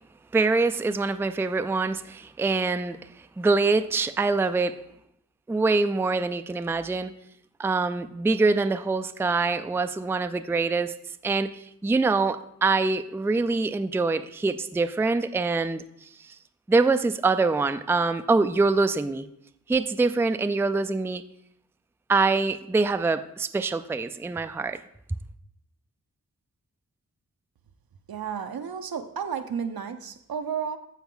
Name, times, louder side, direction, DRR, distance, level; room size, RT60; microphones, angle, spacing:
voice 1, 0.3-3.0 3.4-4.8 5.5-7.1 7.6-10.9 11.2-15.8 16.7-19.3 19.7-21.2 22.1-24.8, right 3 dB, 5° right, 10 dB, 0.3 m, -24 dB
voice 2, 28.1-30.8, right 7 dB, 80° right, 7 dB, 0.8 m, -32 dB
14.5 x 4.9 x 3.8 m, 0.75 s
wide cardioid pair, 85°, 35 cm